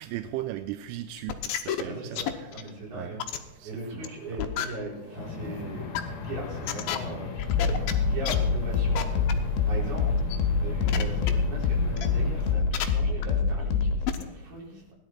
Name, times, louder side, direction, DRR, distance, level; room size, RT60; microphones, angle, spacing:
voice 1, 0.0-2.2 2.9-3.2 3.6-4.1, right 14 dB, 85° right, 10 dB, 3.1 m, -37 dB
sound 1, 1.2-1.8 2.2-2.7 3.2-3.4 4.0-4.1 4.4-4.7 5.4-5.5 5.9-6.0 6.6-7.0 7.4-7.9 8.3-8.4 9.0-9.1 9.3-9.4 10.0-10.4 10.9-11.3 12.0-12.1 12.7-12.8 13.2-13.3 13.8-13.9 14.1-14.2, left 11 dB, 90° left, 2.1 m, -30 dB
voice 2, 1.8-9.2 9.6-10.2 10.6-14.8, right 1 dB, 40° right, -3 dB, 5.0 m, -39 dB
sound 2, 5.2-12.6, left 4 dB, 55° left, 4.1 m, -38 dB
sound 3, 5.4-14.1, left 5 dB, 75° left, 3.4 m, -27 dB
17.5 x 11.0 x 4.4 m, 1.0 s
omnidirectional pair, 5.5 m